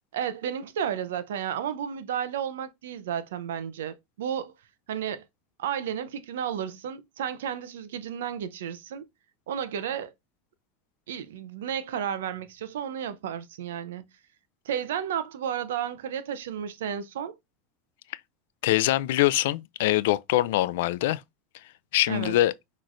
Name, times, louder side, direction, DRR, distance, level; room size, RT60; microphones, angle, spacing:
voice 1, 0.1-4.5 4.9-5.3 5.6-9.0 9.5-10.1 11.1-14.0 14.6-17.3 22.1-22.4, right 9 dB, 90° right, 0.7 m, -32 dB
voice 2, 18.6-21.2 21.9-22.5, left 15 dB, 75° left, 0.4 m, -23 dB
6.1 x 3.1 x 2.6 m
supercardioid pair, 115°, 0 cm